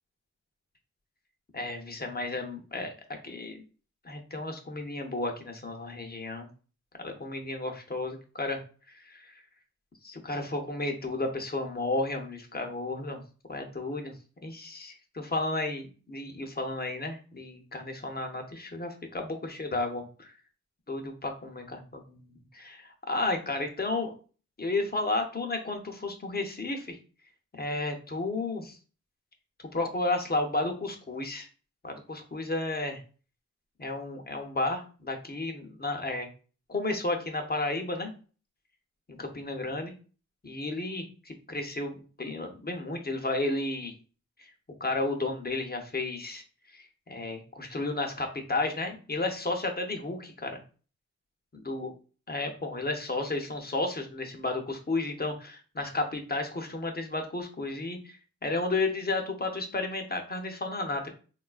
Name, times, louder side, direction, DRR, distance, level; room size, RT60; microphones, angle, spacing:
voice 1, 1.5-2.9 3.2-3.6 4.0-6.5 7.0-8.6 8.9-9.3 10.0-13.2 13.5-14.1 14.4-20.3 20.9-24.1 24.6-27.0 27.5-28.8 29.7-31.5 31.8-33.0 33.8-36.3 36.7-38.1 39.1-39.9 40.4-43.9 44.4-44.5 44.8-46.4 46.7-50.6 51.7-51.9 52.3-58.2 58.4-61.1, left 2 dB, 35° left, 4 dB, 0.6 m, -32 dB
3.5 x 2.3 x 2.4 m, 0.37 s
wide cardioid pair, 85°, 29 cm